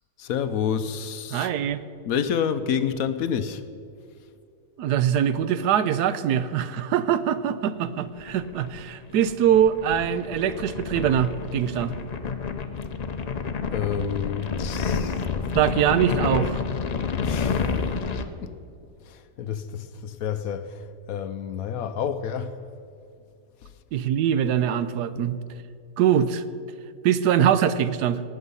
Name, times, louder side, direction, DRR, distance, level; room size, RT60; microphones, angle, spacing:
voice 1, 0.2-1.5 2.0-3.6 13.7-15.3 17.2-17.8 18.4-18.6 19.0-22.6 23.6-23.7 25.1-25.2, left 7 dB, 70° left, 1.0 m, -29 dB
voice 2, 1.3-1.8 4.8-11.9 15.5-16.6 23.9-25.4 26.0-26.4 27.0-28.2, right 9 dB, 90° right, 1.2 m, -23 dB
sound 1, 8.2-18.2, left 5 dB, 90° left, 0.3 m, -29 dB
18.5 x 8.1 x 5.4 m
omnidirectional pair, 1.7 m